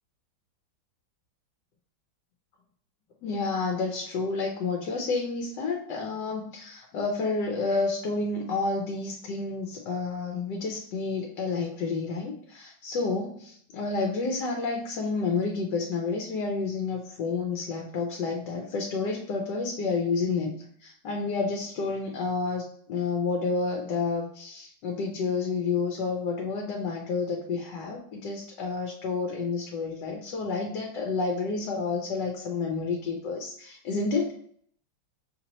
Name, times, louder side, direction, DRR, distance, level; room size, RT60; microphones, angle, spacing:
voice 1, 3.2-34.3, left 4 dB, 70° left, 1 dB, 1.2 m, -30 dB
5.8 x 2.8 x 2.9 m, 0.63 s
omnidirectional pair, 2.1 m